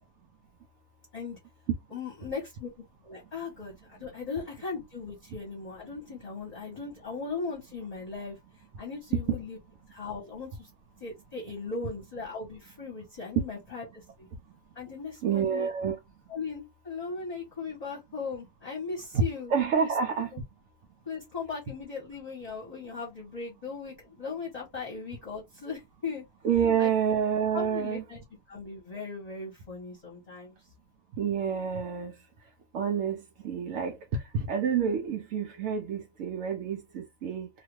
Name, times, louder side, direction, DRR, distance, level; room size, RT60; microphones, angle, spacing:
voice 1, 1.9-2.7 3.0-8.4 8.8-9.6 9.9-10.7 11.0-14.3 14.7-15.7 16.3-19.9 20.3-20.4 21.1-26.2 26.8-26.9 27.5-28.2 28.5-30.5, left 4 dB, 30° left, 1.0 m, -38 dB
voice 2, 15.2-16.0 19.1-19.2 19.5-20.3 26.4-28.0 31.2-32.1 32.7-37.5, right 7 dB, 70° right, 0.9 m, -28 dB
2.8 x 2.4 x 3.0 m
omnidirectional pair, 1.5 m